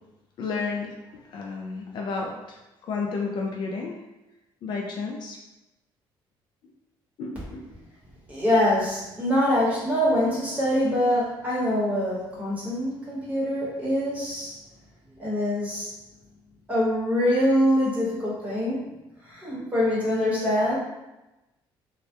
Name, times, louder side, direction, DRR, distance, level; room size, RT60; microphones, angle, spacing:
voice 1, 0.4-4.0 4.6-5.4 7.2-7.7, left 4 dB, 55° left, 0 dB, 0.3 m, -32 dB
voice 2, 8.3-14.5 15.2-15.9 16.7-18.9 19.2-20.8, left 1 dB, 15° right, -7 dB, 0.9 m, -24 dB
2.2 x 2.1 x 2.7 m, 0.98 s
cardioid pair, 145°, 9 cm